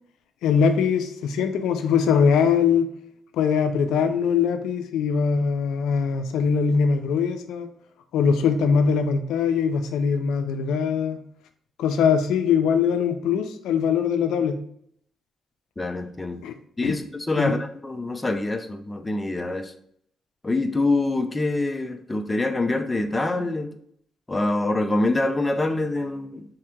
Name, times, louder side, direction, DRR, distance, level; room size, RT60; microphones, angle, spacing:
voice 1, 0.4-2.9 3.3-7.7 8.1-11.2 11.8-14.6 16.4-16.5 16.8-17.0 17.4-17.6, left 6 dB, 85° left, 8 dB, 0.4 m, -22 dB
voice 2, 15.8-16.4 16.8-17.0 17.3-19.7 20.4-23.7 24.3-26.4, left 2 dB, 15° left, 7 dB, 0.4 m, -25 dB
3.3 x 2.8 x 3.6 m, 0.67 s
cardioid pair, 90°, 0 cm